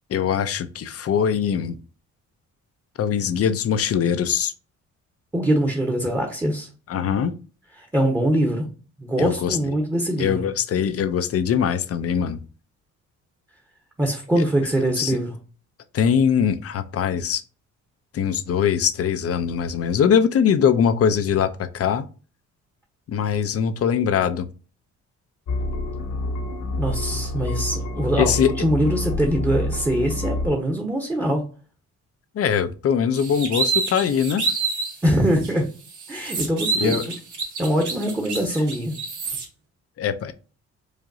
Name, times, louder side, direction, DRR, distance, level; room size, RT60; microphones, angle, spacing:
voice 1, 0.1-1.8 3.0-4.5 6.9-7.3 9.2-9.6 10.2-12.4 15.0-15.2 15.9-17.4 18.1-22.0 23.1-24.5 28.2-28.5 32.3-34.4 36.7-37.0 40.0-40.3, left 8 dB, 50° left, 11 dB, 0.6 m, -22 dB
voice 2, 5.3-6.7 7.9-8.7 9.0-10.4 14.0-15.4 26.8-31.4 35.0-35.7 36.1-37.0 37.6-38.9, right 1 dB, 10° right, 1 dB, 1.0 m, -23 dB
sound 1, 25.5-30.5, left 1 dB, 70° left, 1.0 m, -27 dB
sound 2, 33.1-35.0 35.4-35.5 35.9-39.4, right 4 dB, 70° right, 2.1 m, -27 dB
4.9 x 2.6 x 2.6 m, 0.36 s
cardioid pair, 90°, 30 cm